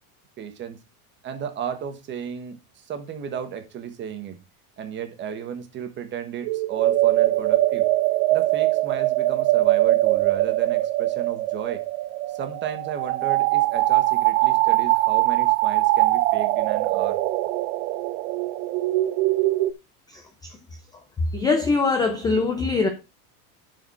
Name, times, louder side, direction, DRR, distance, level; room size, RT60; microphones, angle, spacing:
voice 1, 0.4-0.8 1.2-2.6 2.9-4.4 4.8-7.9 8.3-11.8 12.3-17.2, right 8 dB, 25° right, 1.3 m, -34 dB
sound 1, 6.4-19.7, right 17 dB, 70° right, 0.8 m, -22 dB
voice 2, 21.3-22.9, left 4 dB, 10° left, 0.5 m, -22 dB
11.5 x 5.0 x 4.7 m
cardioid pair, 175°, 43 cm